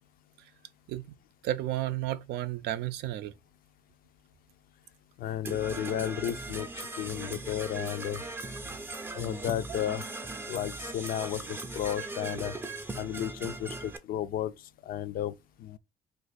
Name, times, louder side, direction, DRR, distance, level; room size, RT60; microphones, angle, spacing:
voice 1, 1.4-3.3, right 13 dB, 80° right, 0.4 m, -32 dB
voice 2, 5.2-8.2 9.1-10.0 10.5-12.5 13.0-14.5 14.8-15.3 15.6-15.8, left 11 dB, 60° left, 0.4 m, -33 dB
Percussion / Brass instrument, 5.4-14.0, right 2 dB, 15° right, 0.5 m, -39 dB
2.5 x 2.4 x 4.0 m
cardioid pair, 110°, 17 cm